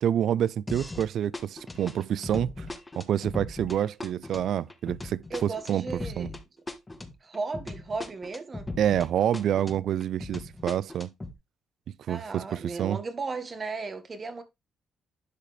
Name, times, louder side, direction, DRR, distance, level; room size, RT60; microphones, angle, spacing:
voice 1, 0.0-2.7 3.0-5.8 6.2-6.3 8.8-11.1 12.1-13.0, right 10 dB, 70° right, 0.4 m, -27 dB
sound 1, 0.7-1.1 1.3-9.1 9.3-11.3, left 2 dB, 20° left, 1.4 m, -38 dB
voice 2, 5.3-6.3 7.2-8.7 12.1-14.4, right 4 dB, 35° right, 1.6 m, -35 dB
11.0 x 5.1 x 3.3 m
cardioid pair, 90°, 0 cm